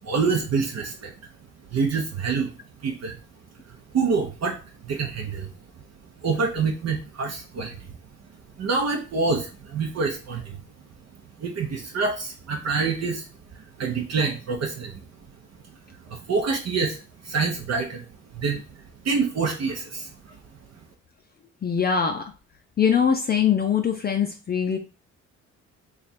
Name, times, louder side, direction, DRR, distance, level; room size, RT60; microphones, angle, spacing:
voice 1, 0.0-1.1 1.7-2.5 2.8-3.2 3.9-5.5 6.2-7.9 8.6-10.6 11.4-13.3 13.5-14.9 16.0-18.1 18.3-20.4, right 4 dB, 55° right, 1 dB, 0.8 m, -26 dB
voice 2, 21.6-22.3 22.8-24.8, left 7 dB, 35° left, 4 dB, 0.4 m, -22 dB
3.2 x 2.4 x 4.1 m, 0.34 s
cardioid pair, 90°, 30 cm